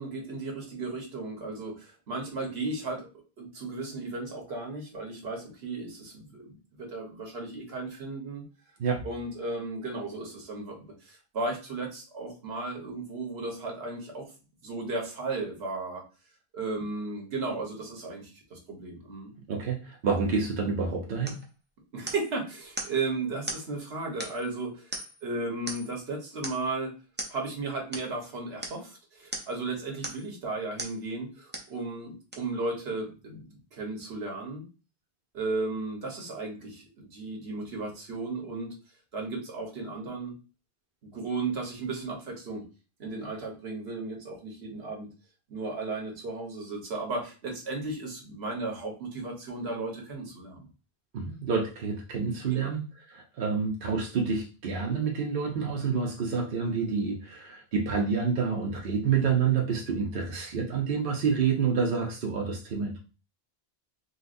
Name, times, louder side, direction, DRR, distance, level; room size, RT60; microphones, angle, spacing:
voice 1, 0.0-3.1 3.4-8.4 9.0-14.3 14.6-16.0 16.5-19.3 21.9-26.9 27.3-34.6 35.3-38.8 39.1-40.3 41.0-42.6 43.0-45.1 45.5-50.7 52.5-52.7, right 3 dB, 80° right, 1 dB, 1.3 m, -35 dB
voice 2, 19.5-21.4 51.1-52.8 53.1-63.0, right 5 dB, 65° right, 0 dB, 0.8 m, -28 dB
sound 1, 21.3-21.5 22.1-22.4 22.8-23.0 23.5-23.7 24.2-24.5 24.9-25.3 25.7-26.0 26.4-26.7 27.2-27.4 27.9-28.1 28.6-28.8 29.3-29.6 30.0-30.3 30.8-31.0 31.5-31.8 32.3-32.4, right 2 dB, 15° right, 0.4 m, -38 dB
3.9 x 2.4 x 2.5 m, 0.33 s
omnidirectional pair, 1.0 m